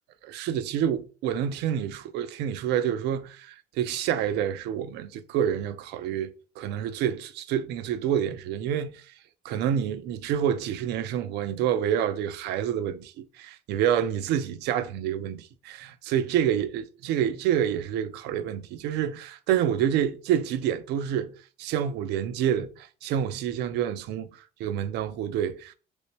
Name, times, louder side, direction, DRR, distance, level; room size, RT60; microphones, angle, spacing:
voice 1, 0.2-9.0 9.4-24.3 24.6-25.7, right 9 dB, 85° right, 0.5 m, -28 dB
3.1 x 3.1 x 2.9 m
cardioid pair, 110°, 17 cm